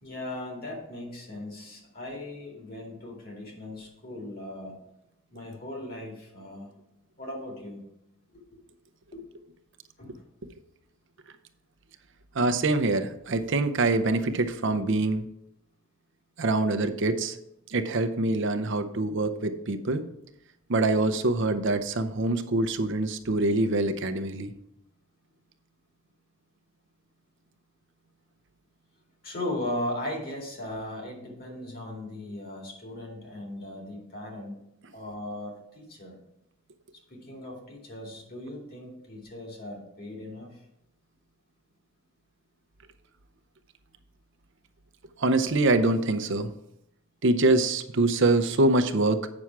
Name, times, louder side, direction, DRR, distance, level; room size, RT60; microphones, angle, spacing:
voice 1, 0.0-4.8 5.3-6.7 7.2-7.8 8.3-8.4 9.1-9.2 10.0-10.2 29.2-34.6 34.9-36.2 37.1-40.6, left 1 dB, 45° left, 0 dB, 2.3 m, -38 dB
voice 2, 12.4-15.2 16.4-17.4 17.7-20.1 20.7-24.5 45.2-46.5 47.2-49.3, right 2 dB, 60° right, 8 dB, 0.7 m, -24 dB
8.5 x 6.2 x 4.6 m, 0.81 s
head